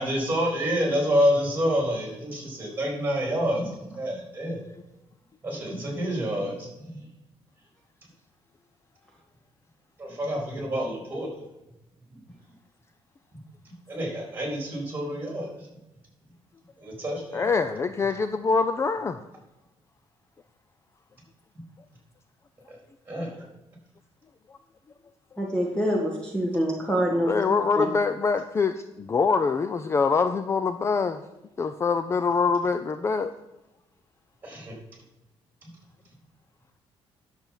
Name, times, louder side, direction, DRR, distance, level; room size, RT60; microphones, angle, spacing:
voice 1, 0.0-4.6 5.4-7.1 10.0-11.4 13.3-13.4 13.6-15.7 16.8-17.5 22.7-22.8 23.1-23.4 34.4-34.7, equal, 20° right, 0 dB, 4.1 m, -28 dB
voice 2, 17.3-19.2 27.2-31.2 31.6-33.3, left 4 dB, 25° left, 10 dB, 0.5 m, -24 dB
voice 3, 25.4-27.3 27.8-27.9, equal, 10° left, -1 dB, 1.6 m, -25 dB
10.5 x 7.2 x 5.8 m, 0.96 s
cardioid pair, 140°, 10 cm